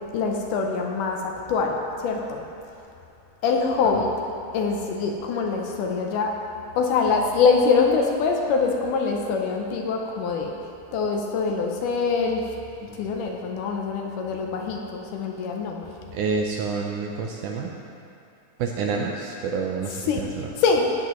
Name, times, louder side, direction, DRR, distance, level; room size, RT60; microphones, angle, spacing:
voice 1, 0.1-2.4 3.4-4.1 4.5-6.3 6.8-10.6 10.9-12.4 12.8-15.9 20.1-20.2 20.6-21.0, left 4 dB, 75° left, 1 dB, 2.1 m, -24 dB
voice 2, 16.1-17.7 18.6-20.5, right 5 dB, 80° right, 1 dB, 1.8 m, -28 dB
14.5 x 9.6 x 3.0 m, 2.6 s
omnidirectional pair, 4.1 m